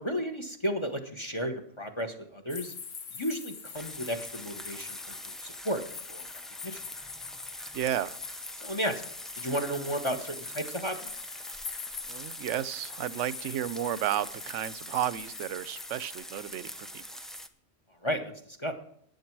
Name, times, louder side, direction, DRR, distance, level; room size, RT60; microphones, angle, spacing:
voice 1, 0.0-2.7 3.1-5.2 5.4-5.8 6.1-6.3 6.6-6.8 8.6-9.0 9.4-11.0 18.0-18.3 18.6-18.7, equal, 25° left, 6 dB, 1.1 m, -33 dB
sound 1, 2.5-16.2, left 6 dB, 75° left, 1.5 m, -44 dB
sound 2, 3.7-17.5, equal, ahead, 0.5 m, -44 dB
voice 2, 7.7-8.2 12.1-17.0, right 11 dB, 75° right, 17 dB, 1.0 m, -32 dB
13.5 x 9.5 x 4.6 m, 0.66 s
omnidirectional pair, 1.3 m